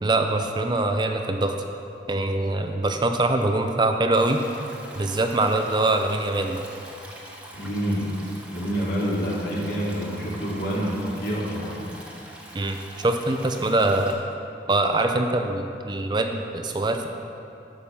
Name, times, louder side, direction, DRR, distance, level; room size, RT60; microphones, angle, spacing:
voice 1, 0.0-1.5 2.1-4.4 5.0-6.6 12.5-14.2 14.7-17.1, right 2 dB, 25° right, 5 dB, 0.5 m, -23 dB
Stream, 4.1-14.1, right 1 dB, 5° right, 1.1 m, -44 dB
voice 2, 7.3-8.1 8.5-11.8, equal, 60° left, -5 dB, 2.5 m, -27 dB
11.5 x 5.5 x 7.1 m, 2.6 s
head